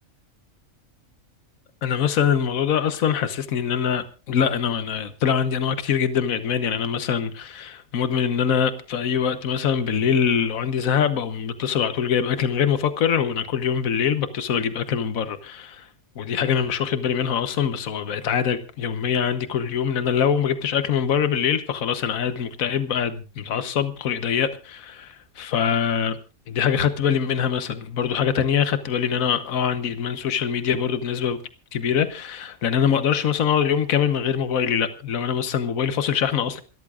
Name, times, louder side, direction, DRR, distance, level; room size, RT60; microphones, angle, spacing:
voice 1, 1.8-15.9 16.2-26.2 26.5-31.4 31.7-36.6, left 8 dB, 75° left, 1.5 m, -23 dB
28.0 x 13.5 x 2.5 m
omnidirectional pair, 1.5 m